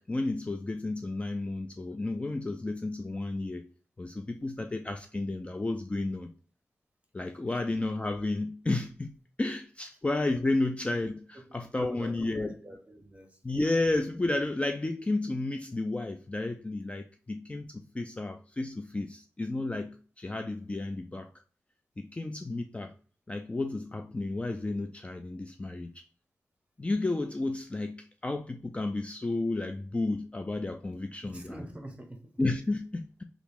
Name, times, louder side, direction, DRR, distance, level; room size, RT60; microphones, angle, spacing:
voice 1, 0.0-3.7 4.0-6.3 7.1-12.5 13.4-21.3 22.0-22.9 23.3-26.0 26.8-31.4 32.4-33.2, left 2 dB, 20° left, 0.3 m, -32 dB
voice 2, 11.7-13.4 31.2-32.2, right 1 dB, 20° right, 0.9 m, -46 dB
3.0 x 2.5 x 3.4 m
wide cardioid pair, 75°, 6 cm